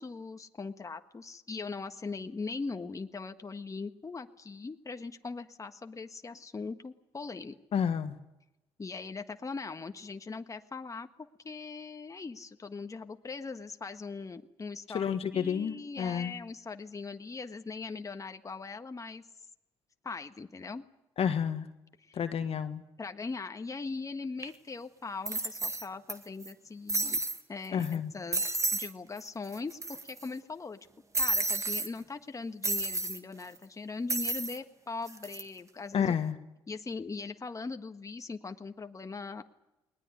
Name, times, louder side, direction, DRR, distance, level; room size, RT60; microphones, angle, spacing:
voice 1, 0.0-7.5 8.8-19.2 20.0-20.8 22.0-22.2 23.0-27.2 27.5-30.8 31.2-36.1 36.7-39.4, left 4 dB, 25° left, 7 dB, 1.5 m, -40 dB
voice 2, 7.7-8.2 14.9-16.3 21.2-21.7 22.1-22.8 27.7-28.1 35.9-36.4, left 7 dB, 55° left, 9 dB, 1.5 m, -30 dB
sound 1, 24.4-24.5 25.3-26.1 26.4-26.5 26.9-27.4 27.8-28.0 28.3-28.9 29.2-29.3 29.5-30.2 31.1-31.9 32.6-33.2 34.1-34.6 35.1-35.4, right 2 dB, 25° right, 2.0 m, -31 dB
20.5 x 19.5 x 9.8 m, 0.91 s
hypercardioid pair, 55°, 12 cm